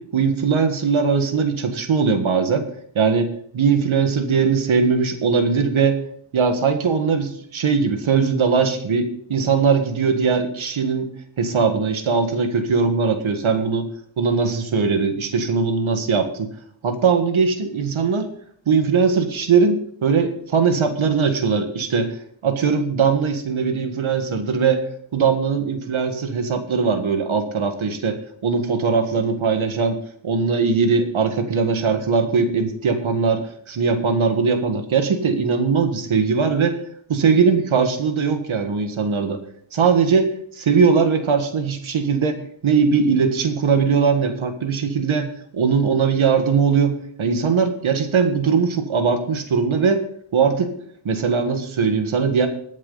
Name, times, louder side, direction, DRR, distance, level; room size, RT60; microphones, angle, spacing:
voice 1, 0.0-2.7 3.0-6.0 6.3-11.1 11.4-13.9 14.2-16.5 16.8-18.3 18.7-22.2 22.4-24.8 25.1-28.2 28.4-30.0 30.2-36.8 37.1-39.4 39.7-50.0 50.3-50.7 51.1-52.5, right 5 dB, 75° right, 7 dB, 1.7 m, -20 dB
21.0 x 7.4 x 4.0 m, 0.62 s
wide cardioid pair, 120°, 48 cm